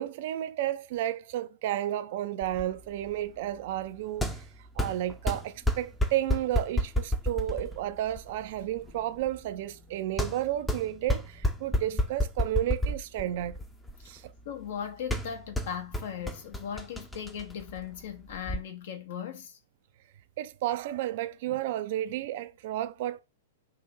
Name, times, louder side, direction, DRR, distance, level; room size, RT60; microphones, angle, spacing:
voice 1, 0.0-4.4 4.8-13.6 14.1-14.2 20.4-23.2, right 13 dB, 50° right, 0.4 m, -32 dB
sound 1, 2.4-18.6, left 1 dB, 5° left, 0.6 m, -32 dB
voice 2, 14.4-19.6, left 8 dB, 60° left, 0.9 m, -38 dB
3.8 x 2.7 x 3.9 m
figure-of-eight pair, 105°, 0 cm